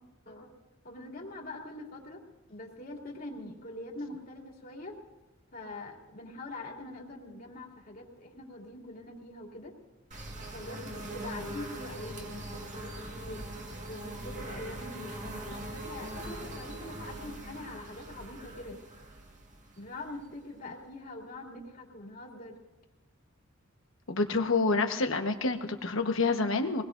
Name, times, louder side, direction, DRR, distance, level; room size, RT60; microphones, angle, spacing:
voice 1, 0.8-2.2 2.5-5.0 5.5-9.7 10.5-18.8 19.8-22.6, left 2 dB, 45° left, -1 dB, 2.8 m, -44 dB
sound 1, 10.1-20.7, right 1 dB, 40° right, 1.7 m, -42 dB
voice 2, 24.1-26.8, left 3 dB, 70° left, 5 dB, 1.2 m, -28 dB
23.5 x 19.5 x 2.6 m, 1.1 s
head